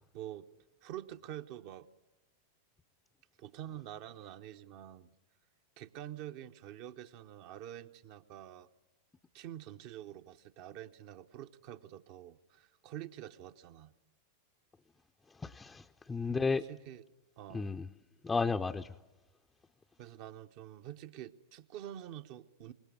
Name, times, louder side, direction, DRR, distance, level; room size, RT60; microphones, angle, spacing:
voice 1, 0.1-0.5 0.8-1.9 3.4-5.1 5.8-8.7 9.3-13.9 16.5-17.0 17.4-17.7 20.0-22.7, right 12 dB, 45° right, 8 dB, 0.9 m, -47 dB
voice 2, 15.4-16.6 17.5-17.9 18.2-18.9, left 4 dB, 15° left, 5 dB, 0.7 m, -33 dB
25.0 x 21.0 x 6.8 m, 1.1 s
figure-of-eight pair, 90°, 0 cm